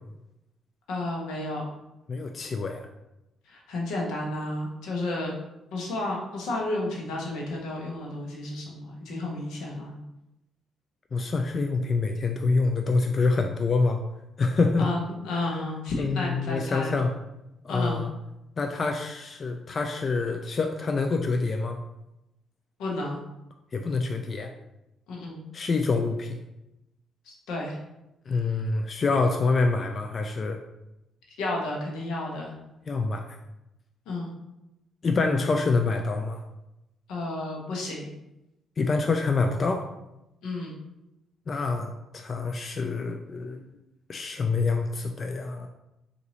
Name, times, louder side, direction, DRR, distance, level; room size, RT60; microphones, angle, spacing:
voice 1, 0.9-1.6 3.5-5.3 5.7-9.9 14.8-16.9 17.7-18.0 22.8-23.2 25.1-25.4 27.3-27.8 31.4-32.5 34.1-34.3 37.1-38.1 40.4-40.8, left 2 dB, 90° left, -2 dB, 0.9 m, -32 dB
voice 2, 2.1-2.8 11.1-14.0 14.4-14.9 15.3-15.5 16.0-17.1 17.6-18.1 18.6-21.8 23.7-24.5 25.5-26.4 28.3-30.6 32.9-33.2 35.0-36.4 38.8-39.9 41.5-43.7 44.1-45.7, left 3 dB, 40° left, 4 dB, 0.3 m, -26 dB
3.9 x 2.6 x 3.0 m, 0.90 s
cardioid pair, 90°, 0 cm